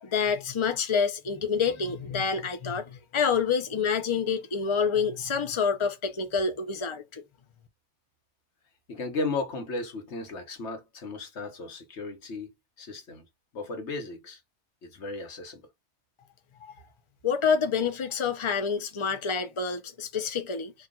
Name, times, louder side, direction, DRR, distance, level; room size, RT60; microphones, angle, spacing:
voice 1, 0.0-7.2 16.6-16.7 17.2-20.7, left 6 dB, 30° left, 0.7 m, -27 dB
voice 2, 8.9-12.5 12.8-13.3 13.5-14.4 14.8-15.6, left 3 dB, 90° left, 1.4 m, -35 dB
4.5 x 2.5 x 3.7 m
omnidirectional pair, 1.1 m